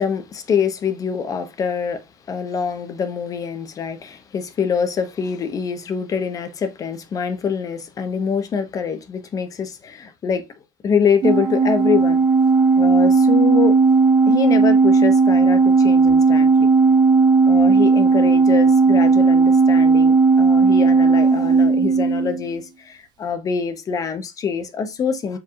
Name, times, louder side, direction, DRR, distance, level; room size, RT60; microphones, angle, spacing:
voice 1, 0.0-10.5 10.8-12.2 12.8-13.8 14.3-16.7 17.5-25.4, left 6 dB, 35° left, 1.0 m, -25 dB
Organ, 11.2-22.5, right 4 dB, 40° right, 0.8 m, -15 dB
5.0 x 3.4 x 2.4 m
supercardioid pair, 120°, 10 cm